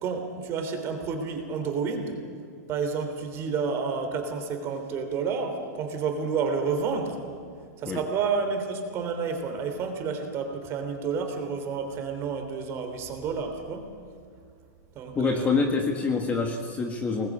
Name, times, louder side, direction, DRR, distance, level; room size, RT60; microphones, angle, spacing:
voice 1, 0.0-2.2 2.7-7.2 7.8-13.9 14.9-15.5, right 5 dB, 25° right, 5 dB, 3.3 m, -30 dB
voice 2, 15.1-17.3, left 4 dB, 15° left, 3 dB, 1.6 m, -26 dB
24.5 x 20.0 x 8.6 m, 2.2 s
supercardioid pair, 160°, 9 cm